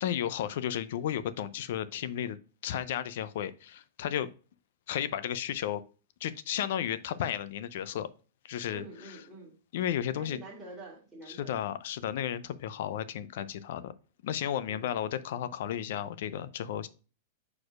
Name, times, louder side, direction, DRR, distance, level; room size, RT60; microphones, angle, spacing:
voice 1, 0.0-2.4 2.6-4.3 4.9-5.8 6.2-8.1 8.4-9.2 9.7-10.4 11.3-13.9 14.2-16.9, left 10 dB, 50° left, 15 dB, 0.5 m, -33 dB
voice 2, 8.7-9.5 10.1-11.6 14.7-14.9, right 2 dB, 5° right, -6 dB, 1.9 m, -47 dB
4.8 x 4.3 x 4.7 m, 0.35 s
supercardioid pair, 175°, 0 cm